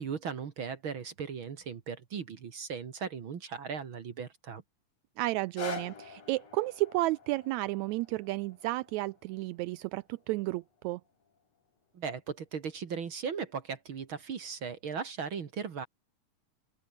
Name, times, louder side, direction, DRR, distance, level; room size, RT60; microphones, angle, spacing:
voice 1, 0.0-4.6 11.9-15.9, right 6 dB, 45° right, 2.0 m, -37 dB
voice 2, 5.2-11.0, right 19 dB, 85° right, 1.6 m, -32 dB
sound 1, 5.3-11.4 12.1-12.2, left 5 dB, 50° left, 4.6 m, -47 dB
open air
omnidirectional pair, 3.8 m